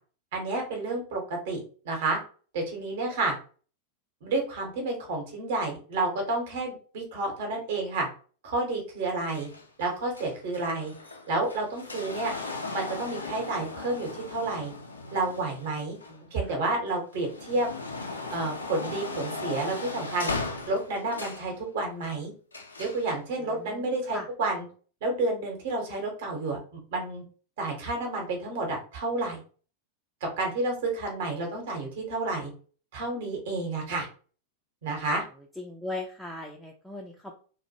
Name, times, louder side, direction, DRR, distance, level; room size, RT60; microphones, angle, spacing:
voice 1, 0.3-1.6 1.8-2.2 2.5-3.3 4.2-8.1 8.4-9.5 9.8-10.9 11.3-12.3 12.7-14.7 15.1-16.0 16.3-17.7 18.3-20.3 20.7-22.3 22.8-24.6 25.0-27.2 27.6-29.4 30.4-32.5 32.9-34.1 34.8-35.2, right 2 dB, 55° right, 1 dB, 0.9 m, -30 dB
sound 1, 9.3-16.5 17.0-21.5 22.5-23.1 24.0-24.1, left 3 dB, 75° left, 0.4 m, -37 dB
voice 2, 16.1-16.6 23.4-24.3 35.6-37.4, left 2 dB, ahead, -2 dB, 0.3 m, -39 dB
2.2 x 2.1 x 2.8 m, 0.40 s
figure-of-eight pair, 90°, 0 cm